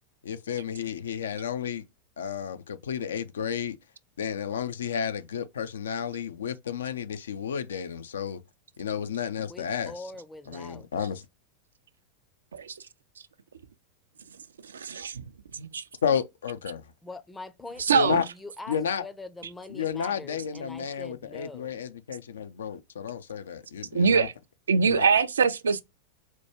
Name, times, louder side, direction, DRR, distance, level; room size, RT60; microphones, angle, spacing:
voice 1, 0.2-1.8 2.2-3.8 4.2-8.4 8.8-10.1 10.5-11.2 16.0-16.9 17.9-18.2 18.7-19.0 19.7-24.3 24.8-25.1, left 7 dB, 65° left, 0.4 m, -32 dB
voice 2, 9.4-10.9 17.0-21.7, left 2 dB, 10° left, 0.5 m, -43 dB
voice 3, 14.7-15.2 15.5-15.8 17.8-18.2 23.9-24.3 24.7-25.8, right 5 dB, 70° right, 0.3 m, -23 dB
4.3 x 2.2 x 2.9 m
figure-of-eight pair, 90°, 0 cm